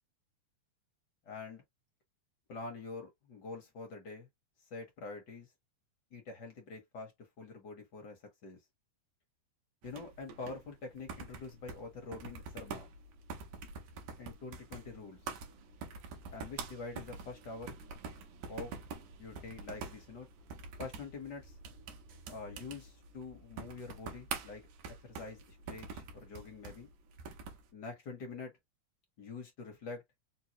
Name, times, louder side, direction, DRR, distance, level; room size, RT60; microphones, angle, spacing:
voice 1, 1.2-1.6 2.5-4.3 4.7-5.5 6.1-7.1 7.4-8.6 9.8-12.9 14.2-15.2 16.3-17.8 18.5-18.7 19.2-20.3 20.8-21.6 22.3-26.9 27.7-28.5 29.2-30.0, left 4 dB, 60° left, 1.1 m, -46 dB
sound 1, 9.8-27.7, right 5 dB, 80° right, 2.3 m, -46 dB
5.3 x 2.1 x 2.9 m
omnidirectional pair, 3.4 m